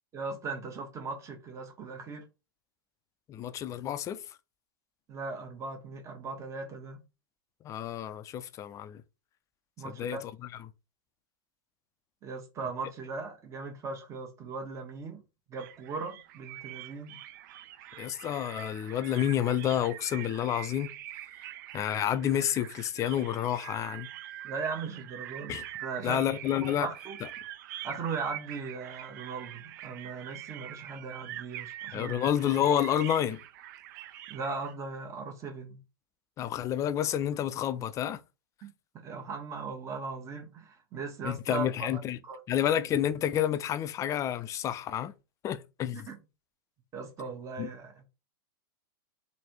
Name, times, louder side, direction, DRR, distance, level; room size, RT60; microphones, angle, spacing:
voice 1, 0.1-2.2 5.1-7.0 9.8-10.2 12.2-15.2 15.5-17.2 24.4-26.2 26.6-27.2 27.8-32.1 34.3-35.8 38.6-41.7 42.2-42.4 45.9-46.2 46.9-48.0, right 4 dB, 25° right, 1.1 m, -38 dB
voice 2, 3.3-4.4 7.6-9.0 9.8-10.2 17.9-20.9 21.7-24.1 25.5-25.6 26.0-26.9 31.9-33.4 36.4-38.2 41.2-42.2 42.5-45.1 45.4-46.1 47.6-47.7, left 10 dB, 25° left, 0.4 m, -29 dB
sound 1, 15.6-34.8, right 13 dB, 55° right, 0.4 m, -45 dB
3.2 x 2.7 x 4.5 m
hypercardioid pair, 110°, 12 cm